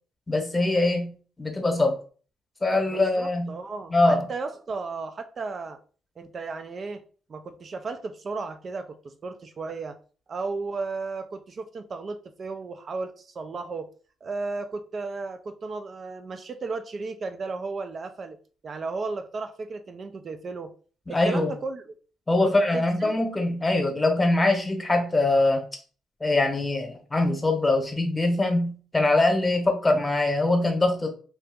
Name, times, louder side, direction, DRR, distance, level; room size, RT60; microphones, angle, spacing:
voice 1, 0.3-1.1 1.4-2.0 2.6-3.5 3.9-4.2 21.1-21.5 22.3-25.7 26.2-31.1, left 2 dB, 20° left, 4 dB, 0.9 m, -23 dB
voice 2, 2.8-5.8 6.2-7.0 7.3-10.0 10.3-13.9 14.2-18.4 18.6-20.7 21.1-21.8 22.4-23.1, right 3 dB, 45° right, 8 dB, 0.3 m, -34 dB
2.7 x 2.3 x 3.6 m, 0.40 s
cardioid pair, 90°, 0 cm